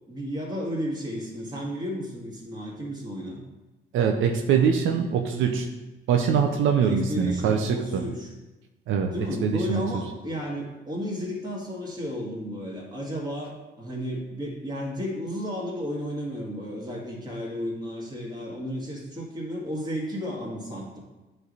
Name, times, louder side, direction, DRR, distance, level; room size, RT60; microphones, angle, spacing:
voice 1, 0.1-3.4 6.9-8.3 9.1-21.0, equal, 20° right, -3 dB, 2.1 m, -33 dB
voice 2, 3.9-5.7 6.1-8.0 8.9-9.1 9.4-9.8, right 7 dB, 80° right, 3 dB, 0.6 m, -23 dB
9.0 x 3.3 x 4.0 m, 1.1 s
cardioid pair, 90°, 20 cm